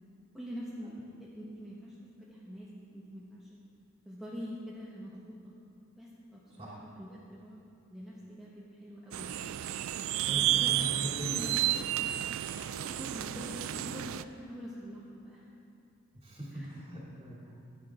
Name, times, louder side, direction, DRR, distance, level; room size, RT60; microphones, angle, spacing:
voice 1, 0.3-3.6 4.0-5.5 6.0-7.6 7.9-9.3 10.3-10.7 11.2-11.5 12.6-15.5 16.5-16.7, equal, ahead, -8 dB, 1.4 m, -45 dB
sound 1, 9.1-14.2, right 13 dB, 65° right, 0.3 m, -31 dB
voice 2, 10.3-11.3 16.2-17.6, right 1 dB, 25° right, -5 dB, 2.6 m, -40 dB
15.5 x 10.5 x 3.7 m, 2.6 s
head